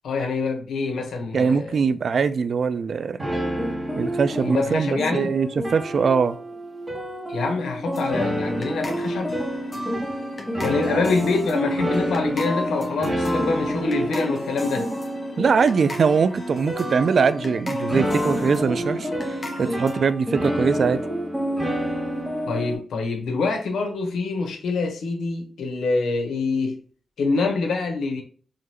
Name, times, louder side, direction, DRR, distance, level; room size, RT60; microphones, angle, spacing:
voice 1, 0.0-1.8 4.4-5.3 7.3-9.4 10.6-14.9 22.5-26.8 27.2-28.2, left 3 dB, 90° left, 1.0 m, -25 dB
voice 2, 1.3-3.3 4.0-6.4 10.9-11.0 15.4-21.0, right 5 dB, 65° right, 0.4 m, -22 dB
sound 1, 3.2-22.8, equal, 15° right, 1.7 m, -28 dB
sound 2, 7.9-20.1, left 1 dB, 40° left, 1.2 m, -35 dB
3.8 x 3.1 x 2.9 m
cardioid pair, 70°, 0 cm